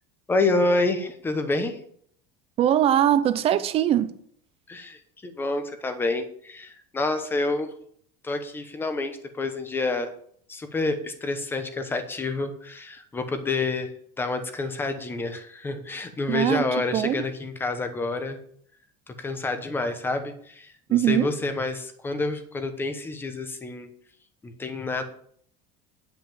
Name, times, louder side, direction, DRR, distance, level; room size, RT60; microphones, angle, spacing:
voice 1, 0.3-1.8 4.7-7.7 8.2-10.1 10.5-13.9 14.2-18.4 19.1-23.9 24.4-25.0, left 3 dB, 10° left, 0.9 m, -28 dB
voice 2, 2.6-4.1 16.3-17.2 20.9-21.3, right 11 dB, 30° right, 0.6 m, -22 dB
9.7 x 6.0 x 7.2 m
cardioid pair, 175°, 20 cm